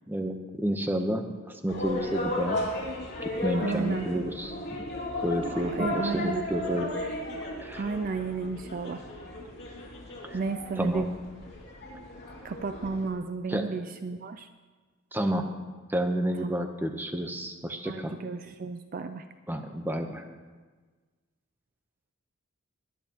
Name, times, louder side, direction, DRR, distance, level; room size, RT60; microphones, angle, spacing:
voice 1, 0.1-2.7 3.2-4.9 5.2-6.9 7.6-7.9 10.2-10.4 10.8-11.1 13.5-13.7 15.1-15.5 15.9-18.1 19.5-20.2, equal, 10° right, 5 dB, 0.8 m, -30 dB
sound 1, 1.7-13.1, left 1 dB, 50° left, 2.8 m, -35 dB
voice 2, 3.6-4.1 5.4-6.4 7.7-9.0 10.3-11.1 12.4-14.5 16.4-16.6 17.8-19.3, right 4 dB, 40° right, 9 dB, 0.4 m, -33 dB
21.0 x 10.5 x 2.9 m, 1.4 s
head